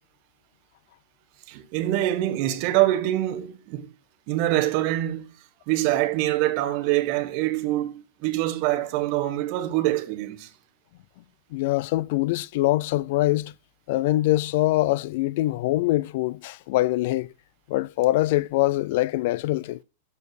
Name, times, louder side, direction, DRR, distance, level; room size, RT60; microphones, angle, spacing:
voice 1, 1.5-3.9 4.3-5.3 5.7-10.5, right 15 dB, 45° right, 1.1 m, -25 dB
voice 2, 11.5-13.5 13.9-17.3 17.7-19.8, left 17 dB, 55° left, 0.3 m, -23 dB
6.7 x 5.2 x 6.2 m
supercardioid pair, 150°, 0 cm